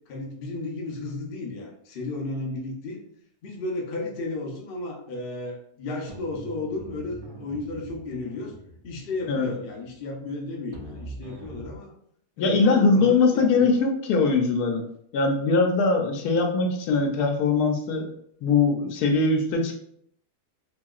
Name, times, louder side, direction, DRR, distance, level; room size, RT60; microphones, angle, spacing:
voice 1, 0.1-3.0 3.4-8.5 8.8-11.9 12.4-13.8, left 2 dB, 55° left, 0 dB, 0.6 m, -34 dB
sound 1, 6.1-11.8, right 3 dB, 75° right, 0.6 m, -43 dB
voice 2, 12.4-14.8 15.1-18.1 18.4-19.7, left 4 dB, 80° left, 2 dB, 1.1 m, -21 dB
3.0 x 2.7 x 2.3 m, 0.69 s
omnidirectional pair, 1.7 m